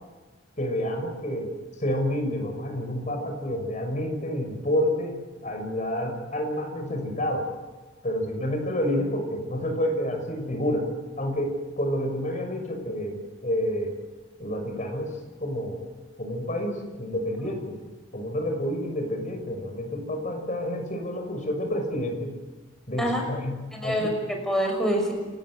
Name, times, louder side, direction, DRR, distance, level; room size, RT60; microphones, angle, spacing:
voice 1, 0.6-1.5 1.8-5.2 5.4-7.5 8.0-10.9 11.2-13.9 14.4-15.1 15.4-15.8 16.2-17.8 18.1-22.3 22.9-24.1, equal, 40° left, 3 dB, 6.1 m, -29 dB
voice 2, 23.7-25.1, equal, 5° left, 1 dB, 5.9 m, -26 dB
29.0 x 14.0 x 9.6 m, 1.2 s
head